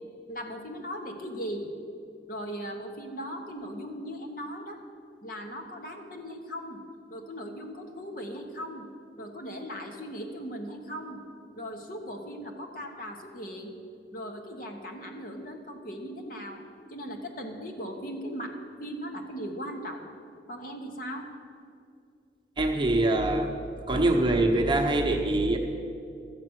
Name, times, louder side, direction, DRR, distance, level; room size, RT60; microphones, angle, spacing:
voice 1, 0.3-1.7 2.3-4.8 5.2-6.8 7.1-8.9 9.2-11.2 11.6-13.8 14.1-16.6 16.9-20.1 20.5-21.3, equal, 50° left, 3 dB, 1.2 m, -38 dB
voice 2, 22.6-23.5 23.9-25.6, right 2 dB, 25° right, 3 dB, 0.9 m, -24 dB
13.0 x 8.5 x 6.3 m, 2.5 s
head